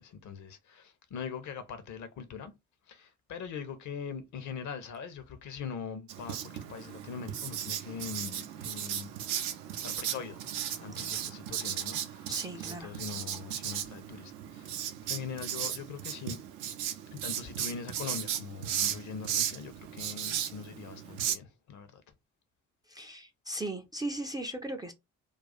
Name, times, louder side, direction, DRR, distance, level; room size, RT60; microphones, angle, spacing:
voice 1, 0.0-2.5 2.9-10.4 10.8-12.3 12.6-16.4 17.1-22.0, left 6 dB, 50° left, 0.7 m, -42 dB
Writing, 6.1-21.3, right 10 dB, 65° right, 0.6 m, -36 dB
voice 2, 12.3-13.0 22.9-24.9, right 1 dB, 10° right, 0.4 m, -37 dB
2.4 x 2.3 x 4.0 m
figure-of-eight pair, 45°, 39 cm